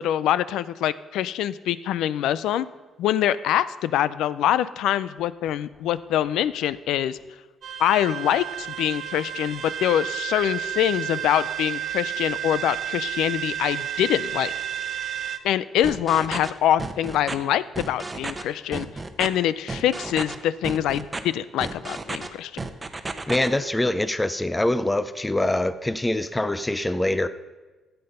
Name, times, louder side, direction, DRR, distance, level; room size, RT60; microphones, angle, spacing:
voice 1, 0.0-2.7 3.0-7.2 7.8-14.5 15.4-18.9 19.2-22.5, left 11 dB, 85° left, 16 dB, 0.4 m, -24 dB
sound 1, 7.6-15.4, right 11 dB, 65° right, 0.8 m, -31 dB
sound 2, 15.8-16.5 16.8-17.4 17.8-18.4 18.7-19.3 19.7-20.4 20.6-21.2 21.6-22.3 22.6-23.5, right 3 dB, 25° right, 0.9 m, -32 dB
voice 2, 23.3-27.3, left 1 dB, 10° left, 13 dB, 0.5 m, -24 dB
13.0 x 7.9 x 5.4 m, 1.2 s
cardioid pair, 90°, 0 cm